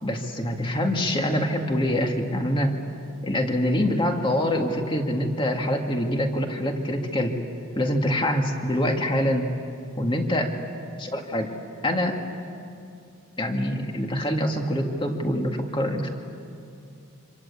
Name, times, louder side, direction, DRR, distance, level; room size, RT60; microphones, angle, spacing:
voice 1, 0.0-2.7 3.2-7.4 7.7-9.5 10.0-10.5 11.0-11.5 11.8-12.2 13.4-16.1, left 1 dB, 25° left, 3 dB, 2.1 m, -25 dB
27.0 x 26.0 x 8.4 m, 2.5 s
head